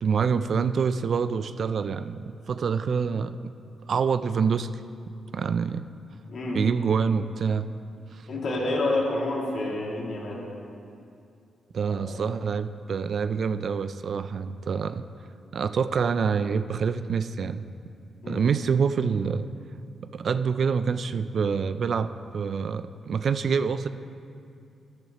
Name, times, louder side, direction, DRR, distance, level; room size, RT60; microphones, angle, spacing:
voice 1, 0.0-3.4 3.9-4.7 5.3-5.8 6.5-7.7 8.1-8.2 11.7-15.1 15.5-17.6 18.3-19.5 20.0-23.9, right 6 dB, 55° right, 12 dB, 0.3 m, -26 dB
voice 2, 6.3-6.6 8.3-10.5 11.9-12.3 18.2-18.4, left 2 dB, 60° left, -3 dB, 2.3 m, -29 dB
13.5 x 11.0 x 2.9 m, 2.5 s
cardioid pair, 110°, 0 cm